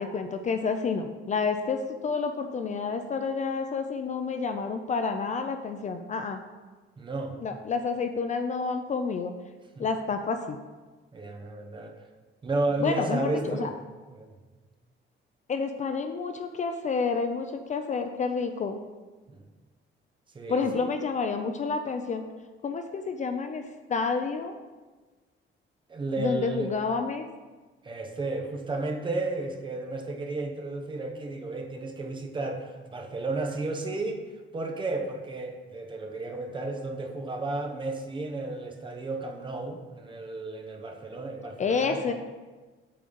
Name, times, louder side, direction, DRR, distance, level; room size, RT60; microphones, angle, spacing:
voice 1, 0.0-6.4 7.4-9.3 9.8-10.6 12.8-13.7 15.5-18.8 20.5-22.2 22.6-24.6 26.2-27.2 41.6-42.1, left 5 dB, 35° left, 7 dB, 0.4 m, -29 dB
voice 2, 7.0-7.4 9.8-9.9 11.1-12.0 12.4-13.7 14.1-14.3 19.3-19.5 20.3-20.9 25.9-26.7 27.8-34.2 34.5-42.0, right 2 dB, 20° right, 3 dB, 0.8 m, -33 dB
8.5 x 3.9 x 6.7 m, 1.3 s
cardioid pair, 170°, 21 cm